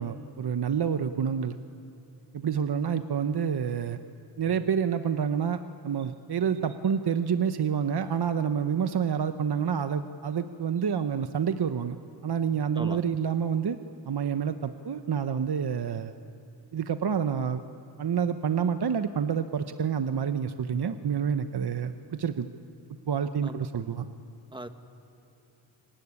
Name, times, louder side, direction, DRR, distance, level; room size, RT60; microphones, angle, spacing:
voice 1, 0.0-1.6 2.3-4.0 4.4-5.6 5.8-12.0 12.2-13.8 14.1-16.1 16.7-17.6 18.0-22.5 23.1-24.1, right 7 dB, 55° right, 9 dB, 1.0 m, -28 dB
voice 2, 12.8-13.0 23.4-23.7 24.5-24.7, right 1 dB, 10° right, 8 dB, 1.7 m, -38 dB
25.5 x 19.5 x 9.8 m, 2.9 s
cardioid pair, 50°, 45 cm